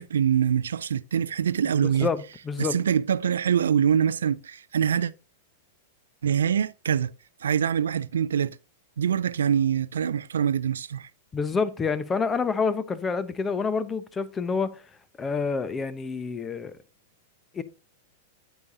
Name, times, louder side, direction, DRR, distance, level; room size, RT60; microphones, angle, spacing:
voice 1, 0.0-2.1 2.6-5.1 6.2-7.1 7.4-8.6 9.0-11.1, right 8 dB, 75° right, 0.4 m, -24 dB
voice 2, 2.0-2.7 11.3-14.8 15.2-16.7 17.5-17.6, left 5 dB, 20° left, 1.0 m, -28 dB
9.6 x 8.4 x 2.7 m
figure-of-eight pair, 100°, 0 cm